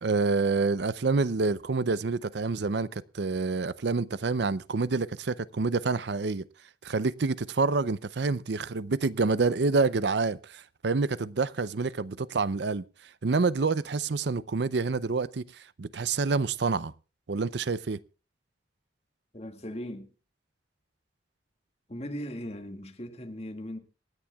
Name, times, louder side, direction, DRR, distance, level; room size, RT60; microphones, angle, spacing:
voice 1, 0.0-6.5 6.8-12.8 13.2-16.9 17.3-18.0, right 4 dB, 70° right, 0.6 m, -27 dB
voice 2, 19.3-20.1 21.9-23.8, equal, 35° left, 1.9 m, -38 dB
27.0 x 10.0 x 2.3 m
head